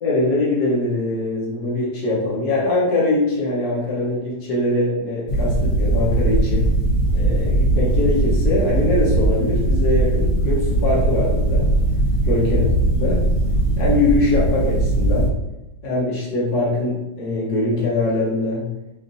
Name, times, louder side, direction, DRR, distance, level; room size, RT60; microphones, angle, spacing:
voice 1, 0.0-6.6 7.1-11.7 12.3-12.6 12.9-13.2 13.8-15.3 15.8-18.7, left 2 dB, 70° left, -6 dB, 1.7 m, -22 dB
sound 1, 5.3-15.3, right 1 dB, 50° left, 1.3 m, -19 dB
5.0 x 2.6 x 2.6 m, 0.96 s
omnidirectional pair, 1.8 m